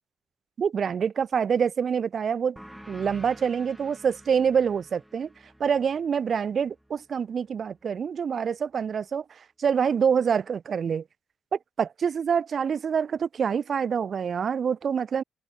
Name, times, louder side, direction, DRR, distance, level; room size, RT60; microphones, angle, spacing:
voice 1, 0.6-2.6 2.9-5.3 5.6-9.2 9.6-11.0 11.5-15.2, right 7 dB, 50° right, 0.8 m, -26 dB
sound 1, 2.6-7.7, equal, ahead, 2.6 m, -50 dB
cardioid pair, 90°, 0 cm